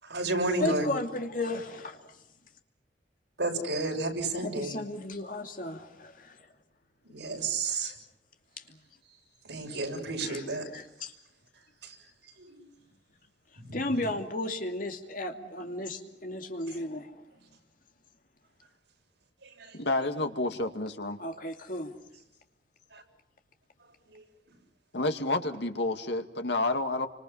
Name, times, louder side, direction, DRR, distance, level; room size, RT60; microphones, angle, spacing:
voice 1, 0.0-0.9 3.4-4.7 7.0-7.9 9.4-10.6 11.8-12.0 12.4-12.7 13.6-13.8 19.4-19.8 22.9-23.0 24.1-24.2, right 2 dB, 85° right, 2 dB, 6.8 m, -32 dB
voice 2, 0.6-2.2 4.4-6.5 8.7-8.8 10.2-10.5 10.7-11.1 13.7-17.2 21.2-21.9, left 1 dB, 50° left, 5 dB, 2.5 m, -34 dB
voice 3, 19.7-21.2 24.9-27.1, left 2 dB, 75° left, 6 dB, 2.2 m, -30 dB
29.5 x 26.0 x 5.7 m, 0.79 s
head